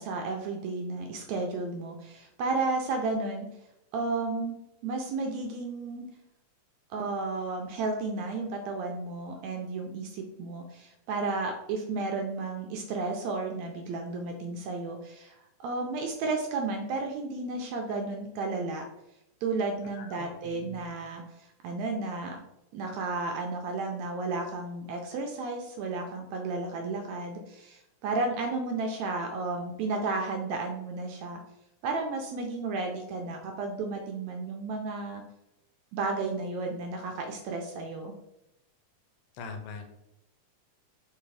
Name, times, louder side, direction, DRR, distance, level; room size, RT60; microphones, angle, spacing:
voice 1, 0.0-3.5 3.9-4.5 4.8-6.1 6.9-18.8 19.4-22.4 22.7-31.4 31.8-35.2 35.9-38.1, right 3 dB, 80° right, 2 dB, 1.6 m, -33 dB
voice 2, 19.9-20.9 39.3-39.9, left 4 dB, 85° left, 6 dB, 2.1 m, -42 dB
4.7 x 3.5 x 3.2 m, 0.86 s
omnidirectional pair, 3.6 m